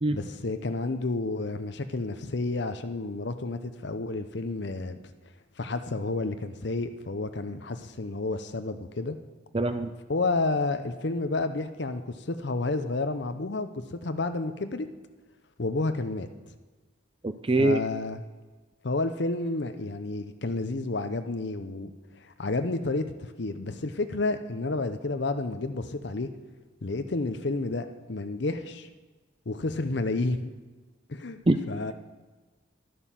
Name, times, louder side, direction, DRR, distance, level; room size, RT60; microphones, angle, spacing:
voice 1, 0.1-5.0 5.6-9.2 10.1-14.9 15.6-16.3 17.6-18.2 18.8-21.9 22.2-26.3 26.8-28.9 29.5-30.5 31.1-31.4 31.7-31.9, left 2 dB, 60° left, 9 dB, 0.7 m, -30 dB
voice 2, 9.5-9.9 17.4-17.8 31.5-31.6, right 2 dB, 25° right, 9 dB, 0.5 m, -22 dB
12.0 x 11.5 x 7.4 m, 1.3 s
head